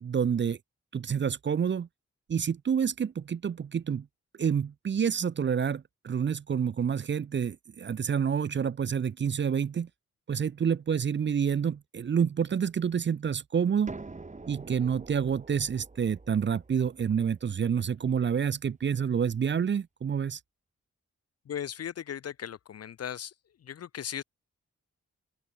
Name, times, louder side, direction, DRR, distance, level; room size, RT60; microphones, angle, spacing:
voice 1, 0.0-0.6 0.9-1.9 2.3-4.1 4.4-9.9 10.3-13.9 14.5-20.4, right 7 dB, 40° right, 0.4 m, -28 dB
sound 1, 13.9-19.5, right 3 dB, 25° right, 1.2 m, -47 dB
voice 2, 21.5-23.3 23.6-24.2, left 9 dB, 55° left, 0.5 m, -37 dB
open air
wide cardioid pair, 80°, 30 cm